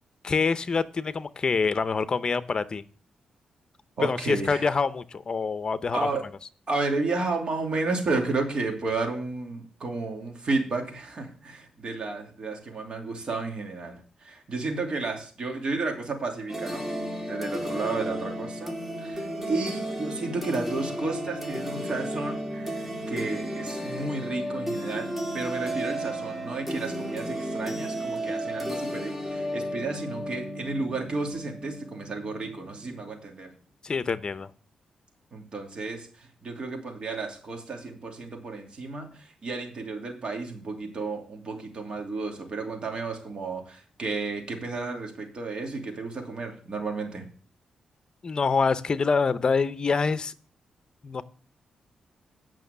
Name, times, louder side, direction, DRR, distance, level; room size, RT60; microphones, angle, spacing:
voice 1, 0.2-2.8 4.0-6.0 33.8-34.5 48.2-50.3 51.0-51.2, left 5 dB, 40° left, 13 dB, 0.7 m, -26 dB
voice 2, 4.0-4.7 5.9-6.2 6.7-16.9 17.3-33.5 35.3-47.2, right 3 dB, 50° right, 2 dB, 2.8 m, -32 dB
sound 1, 16.5-33.1, equal, 10° right, 2.2 m, -33 dB
9.1 x 6.1 x 7.0 m, 0.42 s
cardioid pair, 85°, 2 cm